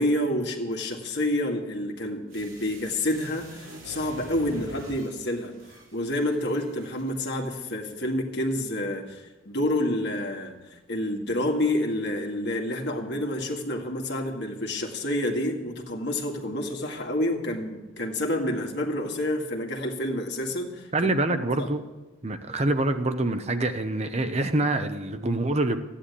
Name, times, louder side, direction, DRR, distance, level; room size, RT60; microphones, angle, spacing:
voice 1, 0.0-5.5 5.9-10.6 10.9-21.7, left 1 dB, 55° left, 2 dB, 2.1 m, -28 dB
sound 1, 2.3-7.3 7.7-7.8, right 1 dB, 80° right, 4.8 m, -47 dB
voice 2, 20.9-21.9 22.2-25.8, right 2 dB, 30° right, 8 dB, 0.8 m, -25 dB
14.5 x 10.0 x 8.4 m, 1.1 s
head